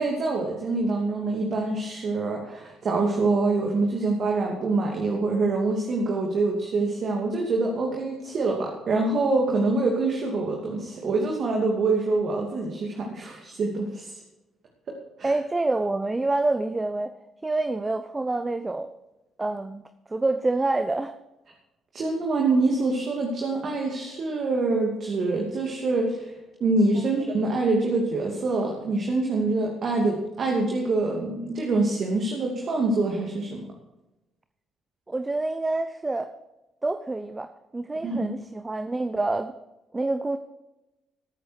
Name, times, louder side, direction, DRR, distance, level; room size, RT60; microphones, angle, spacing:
voice 1, 0.0-14.2 15.2-15.3 21.9-26.3 26.6-33.6 38.0-38.3, right 3 dB, 50° right, 0 dB, 2.7 m, -25 dB
voice 2, 15.2-17.1 17.4-18.9 19.4-19.8 20.1-21.1 26.9-27.1 35.1-36.3 36.8-39.5 39.9-40.4, right 2 dB, 20° right, 9 dB, 0.9 m, -27 dB
19.5 x 9.4 x 4.7 m, 0.99 s
figure-of-eight pair, 45°, 0 cm